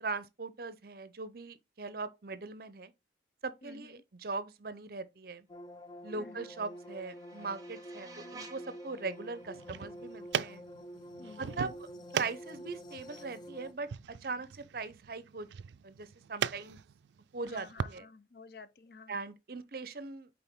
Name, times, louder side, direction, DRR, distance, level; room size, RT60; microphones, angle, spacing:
voice 1, 0.0-2.9 3.4-5.5 6.0-10.6 11.4-11.7 12.1-15.5 15.8-16.8 17.3-18.0 19.1-20.3, right 4 dB, 55° right, 0.7 m, -40 dB
voice 2, 3.6-4.0 6.1-6.5 11.2-11.8 17.4-19.2, left 4 dB, 55° left, 0.7 m, -52 dB
sound 1, 5.5-13.7, equal, 25° left, 0.4 m, -48 dB
sound 2, 6.1-11.1, right 3 dB, 20° right, 1.0 m, -55 dB
sound 3, 9.4-18.0, right 8 dB, 75° right, 0.3 m, -40 dB
8.7 x 3.8 x 3.6 m
head